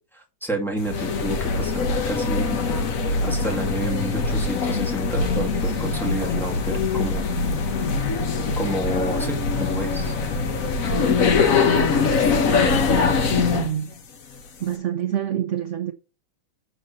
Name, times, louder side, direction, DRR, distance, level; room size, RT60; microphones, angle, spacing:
voice 1, 0.1-2.6 3.2-7.3 8.6-10.2, right 1 dB, ahead, 2.1 m, -30 dB
sound 1, 0.8-13.7, left 4 dB, 50° left, 1.3 m, -22 dB
voice 2, 13.3-13.9 14.6-15.9, right 10 dB, 80° right, 0.6 m, -27 dB
7.8 x 4.0 x 6.3 m
omnidirectional pair, 2.2 m